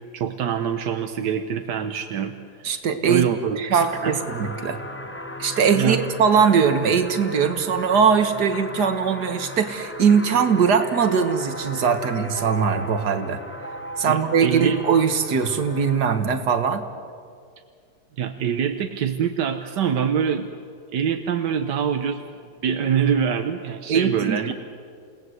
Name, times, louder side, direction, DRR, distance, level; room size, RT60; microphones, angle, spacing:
voice 1, 0.1-2.7 3.1-4.2 5.7-6.0 14.1-14.8 18.2-20.5 20.9-22.2 22.6-24.5, right 7 dB, 85° right, 7 dB, 1.7 m, -25 dB
voice 2, 2.6-3.3 3.6-4.8 5.4-13.4 14.0-16.8 23.9-24.5, right 6 dB, 70° right, 8 dB, 2.1 m, -21 dB
sound 1, 3.7-16.0, equal, 10° left, 1.2 m, -36 dB
29.0 x 18.5 x 8.0 m, 2.2 s
omnidirectional pair, 1.8 m